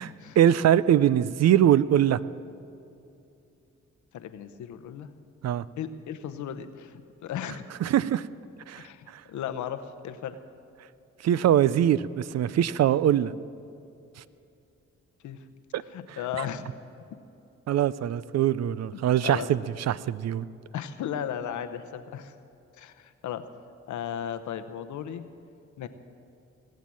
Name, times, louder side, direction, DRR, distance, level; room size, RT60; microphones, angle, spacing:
voice 1, 0.4-2.2 5.4-5.6 7.8-8.2 8.7-8.8 11.2-13.3 15.7-15.8 16.4-16.5 17.7-19.6 19.9-20.4, right 10 dB, 60° right, 18 dB, 0.5 m, -22 dB
voice 2, 4.1-5.1 5.8-7.7 8.7-10.4 15.2-15.4 15.9-16.7 18.9-19.7 20.7-22.3 22.8-23.4 23.9-25.3 25.8-25.9, left 9 dB, 85° left, 10 dB, 0.8 m, -36 dB
19.0 x 7.5 x 7.6 m, 2.7 s
cardioid pair, 60°, 29 cm